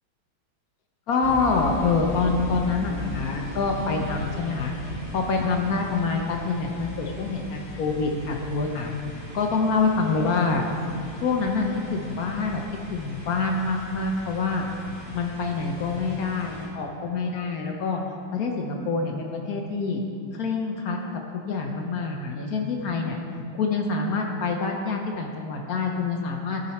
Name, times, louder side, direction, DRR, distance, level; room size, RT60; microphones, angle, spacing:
voice 1, 1.1-4.7 5.1-8.9 9.3-10.6 11.2-12.6 12.9-14.7 15.1-18.0 18.3-20.0 20.3-21.0 21.3-23.2 23.5-26.6, left 4 dB, 60° left, 2 dB, 1.0 m, -26 dB
sound 1, 1.2-16.7, left 3 dB, 35° left, 1.7 m, -38 dB
14.0 x 5.4 x 4.2 m, 2.5 s
omnidirectional pair, 2.2 m